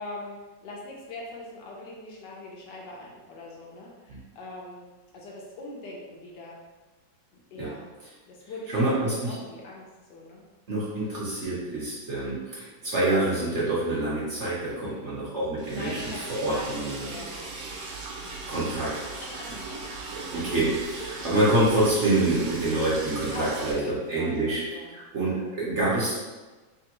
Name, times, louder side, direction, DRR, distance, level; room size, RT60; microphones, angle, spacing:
voice 1, 0.0-4.9 5.1-6.6 7.5-7.9 8.3-10.4 14.7-15.1 15.7-17.4 19.4-19.5 20.9-21.3 23.3-25.4, left 2 dB, 75° left, -2 dB, 1.4 m, -41 dB
voice 2, 8.7-9.3 10.7-16.0 16.3-17.1 18.5-18.9 20.3-23.8 24.1-24.6 24.9-26.1, right 2 dB, 45° right, -8 dB, 1.1 m, -26 dB
Liquid, 15.6-23.7, right 3 dB, 80° right, 1.2 m, -38 dB
3.5 x 3.4 x 2.9 m, 1.2 s
omnidirectional pair, 1.9 m